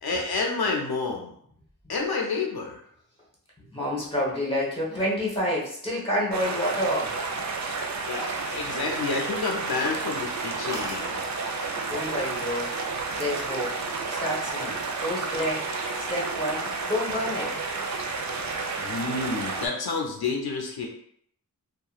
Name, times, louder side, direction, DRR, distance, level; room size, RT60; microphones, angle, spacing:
voice 1, 0.0-1.3 1.9-2.8 8.1-11.2 18.8-20.9, left 4 dB, 80° left, 0 dB, 0.5 m, -29 dB
voice 2, 3.7-7.1 11.9-12.7 13.1-13.7 14.1-15.7 16.1-17.5, equal, 15° left, -4 dB, 1.1 m, -28 dB
sound 1, 6.3-19.7, right 4 dB, 50° right, 0.4 m, -31 dB
sound 2, 10.7-11.1 12.0-12.3 12.6-13.1, equal, 10° right, 0.7 m, -39 dB
2.8 x 2.3 x 2.3 m, 0.65 s
wide cardioid pair, 55°, 37 cm